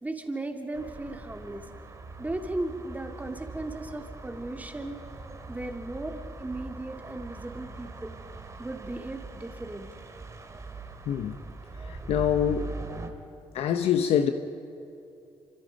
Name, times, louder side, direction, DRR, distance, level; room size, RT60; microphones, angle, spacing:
voice 1, 0.0-1.6 2.2-5.0 5.5-8.2 8.6-9.9, right 2 dB, 15° right, 2.8 m, -36 dB
sound 1, 0.7-13.1, right 3 dB, 30° right, 2.4 m, -42 dB
voice 2, 11.1-11.4 11.8-12.7 13.5-14.3, left 9 dB, 75° left, 1.0 m, -25 dB
27.0 x 25.5 x 5.3 m
cardioid pair, 80°, 11 cm